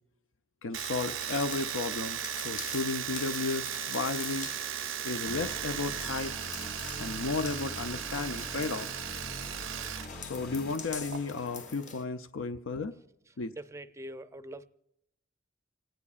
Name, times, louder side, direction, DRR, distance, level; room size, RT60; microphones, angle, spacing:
voice 1, 0.6-4.5 5.0-6.4 7.0-9.0 10.2-12.9 13.4-13.5, left 3 dB, 75° left, 0.5 m, -34 dB
Domestic sounds home sounds, 0.7-10.1 10.3-11.2, right 11 dB, 70° right, 0.6 m, -37 dB
sound 1, 1.0-12.1, left 5 dB, 40° left, 1.1 m, -45 dB
sound 2, 5.3-11.7, equal, 55° left, 2.0 m, -44 dB
voice 2, 13.6-14.7, right 1 dB, 15° right, 0.5 m, -43 dB
27.5 x 18.0 x 2.4 m
head